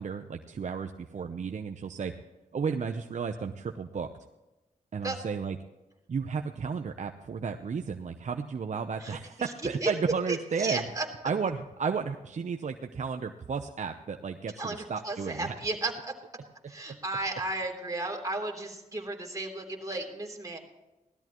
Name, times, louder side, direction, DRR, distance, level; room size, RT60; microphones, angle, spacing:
voice 1, 0.0-2.1 2.5-4.1 4.9-5.6 6.1-10.8 11.2-15.5, right 5 dB, 55° right, 5 dB, 0.8 m, -33 dB
voice 2, 9.0-9.5 9.8-9.9 10.3-11.0 14.6-16.1 16.7-20.6, right 2 dB, 25° right, 1 dB, 3.2 m, -34 dB
17.5 x 13.0 x 3.1 m, 1.0 s
cardioid pair, 65°, 15 cm